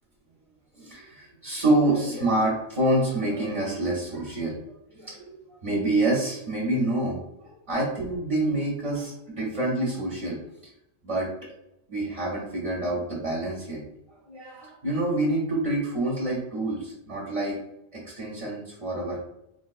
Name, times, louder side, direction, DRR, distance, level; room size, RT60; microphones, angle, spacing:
voice 1, 0.8-4.6 4.9-10.4 11.0-11.3 11.9-13.8 14.1-17.6 17.9-19.2, right 1 dB, 40° right, -4 dB, 0.6 m, -27 dB
3.6 x 2.6 x 2.3 m, 0.84 s
omnidirectional pair, 1.1 m